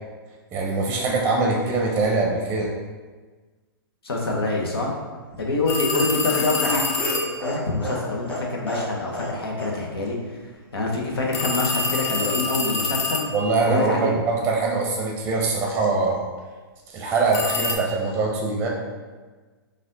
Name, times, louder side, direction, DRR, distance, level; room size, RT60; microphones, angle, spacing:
voice 1, 0.5-2.7 13.3-16.2 16.9-18.7, right 3 dB, 15° right, -1 dB, 0.6 m, -23 dB
voice 2, 4.0-4.9 5.4-6.8 7.4-10.4 10.7-13.3 13.6-14.2, left 2 dB, 85° left, -1 dB, 1.0 m, -25 dB
Laughter, 5.3-9.3 9.6-9.7 10.0-10.1, equal, 10° left, 1.3 m, -31 dB
sound 1, 5.7-7.4 11.3-13.6 17.3-17.7, left 4 dB, 40° left, 0.5 m, -26 dB
4.1 x 2.5 x 3.9 m, 1.4 s
hypercardioid pair, 130°, 12 cm